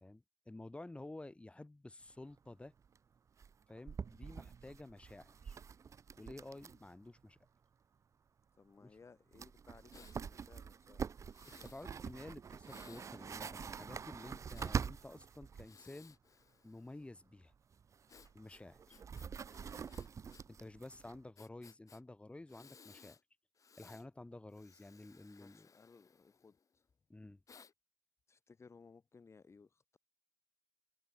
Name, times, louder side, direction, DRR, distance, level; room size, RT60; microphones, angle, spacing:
voice 1, 0.0-2.7 3.7-5.6 6.2-7.4 8.8-8.9 11.4-16.2 16.6-17.5 18.3-19.0 20.5-23.2 23.8-25.7 27.1-27.4, left 2 dB, 20° left, 2.2 m, -52 dB
sound 1, 2.1-2.2 2.4-2.5 2.8-3.0 3.4-6.9 7.2-7.3 9.0-9.1 9.3-15.7 17.5-21.2, right 6 dB, 70° right, 0.3 m, -45 dB
voice 2, 8.6-11.1 19.9-20.1 25.4-26.9 28.3-30.0, left 4 dB, 60° left, 3.2 m, -61 dB
Breathing, 9.9-10.2 11.3-11.9 12.6-14.8 15.5-17.2 18.1-20.4 20.7-20.8 21.4-22.0 22.5-23.2 23.6-24.1 24.5-26.7 27.5-27.7, left 6 dB, 80° left, 1.4 m, -62 dB
wide cardioid pair, 120°, 6 cm